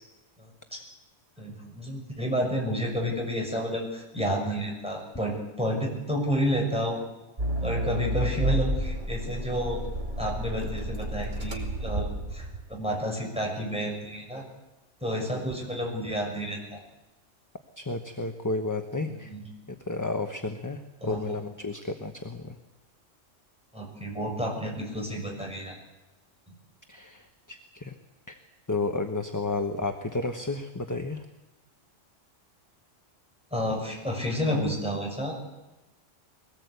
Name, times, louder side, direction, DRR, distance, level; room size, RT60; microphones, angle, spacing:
voice 1, 0.4-0.8 1.4-7.0 7.6-9.8 10.2-14.4 15.0-16.8 19.2-19.5 21.0-21.4 23.7-25.8 33.5-35.4, equal, 5° right, 0 dB, 6.1 m, -30 dB
Accelerating revving vroom, 7.4-12.8, equal, 40° right, 2.8 m, -31 dB
voice 2, 17.8-19.3 19.7-22.6 26.9-27.9 28.3-28.4 28.7-31.2, left 3 dB, 15° left, 6 dB, 1.0 m, -32 dB
22.5 x 18.5 x 8.2 m, 1.0 s
omnidirectional pair, 1.3 m